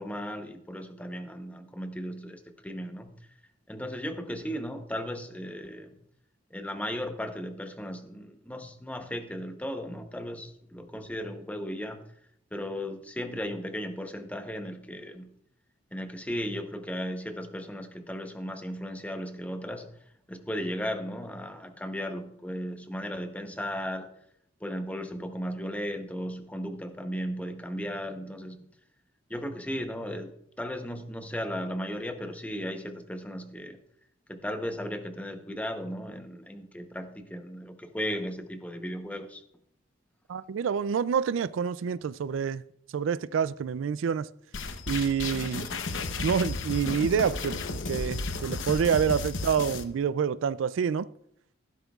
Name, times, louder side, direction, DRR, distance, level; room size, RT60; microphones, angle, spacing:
voice 1, 0.0-3.1 3.7-6.0 6.5-12.0 12.5-15.3 15.9-19.9 20.3-24.1 24.6-28.7 29.3-30.3 30.6-33.8 34.3-39.4, equal, 10° left, 0.8 m, -36 dB
voice 2, 40.3-42.6 42.9-44.3 44.9-45.7 46.2-47.6 47.9-51.1, right 7 dB, 85° right, 0.4 m, -27 dB
sound 1, 44.5-49.8, left 3 dB, 80° left, 0.8 m, -33 dB
14.0 x 12.0 x 2.4 m
head